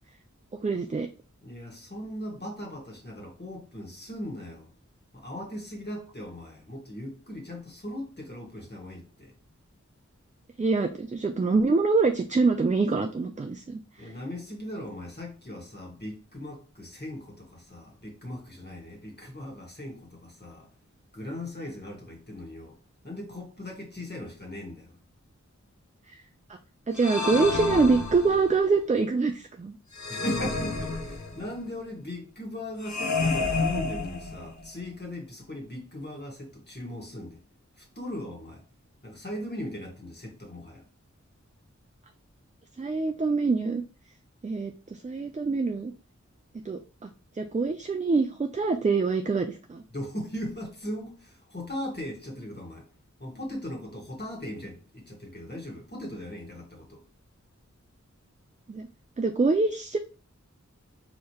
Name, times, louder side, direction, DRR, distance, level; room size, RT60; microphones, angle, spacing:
voice 1, 0.6-1.1 10.6-14.1 26.1-26.2 26.9-29.8 42.8-43.8 44.4-45.9 46.6-47.1 47.4-49.8 58.7-58.9 59.2-60.0, right 4 dB, 25° right, 0.4 m, -25 dB
voice 2, 1.4-4.7 5.1-9.3 14.0-20.7 21.1-22.8 23.0-25.0 30.1-37.4 37.8-38.6 39.0-40.8 49.9-52.9 53.2-57.0, left 1 dB, 35° left, 1.6 m, -38 dB
sound 1, 26.9-28.6 29.9-31.6 32.8-34.7, left 3 dB, 70° left, 0.7 m, -30 dB
4.6 x 3.2 x 2.9 m
wide cardioid pair, 40°, 30 cm